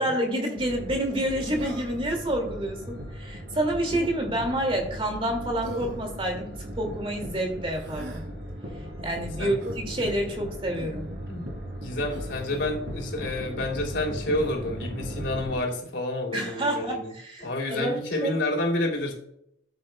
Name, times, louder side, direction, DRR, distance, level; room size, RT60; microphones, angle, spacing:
voice 1, 0.0-8.2 9.0-11.1 16.3-17.9 18.2-18.3, right 1 dB, 30° right, 2 dB, 2.2 m, -28 dB
sound 1, 0.5-15.6, equal, 90° right, 3.4 m, -37 dB
Human voice, 1.6-2.1 3.9-4.1 5.6-6.0 7.7-8.3 9.6-9.8 10.7-11.0 12.1-12.7 14.4-14.6, right 1 dB, 70° right, 2.3 m, -40 dB
voice 2, 11.8-17.1 17.4-19.1, left 1 dB, 80° left, 0 dB, 2.9 m, -29 dB
13.0 x 8.1 x 2.2 m, 0.71 s
head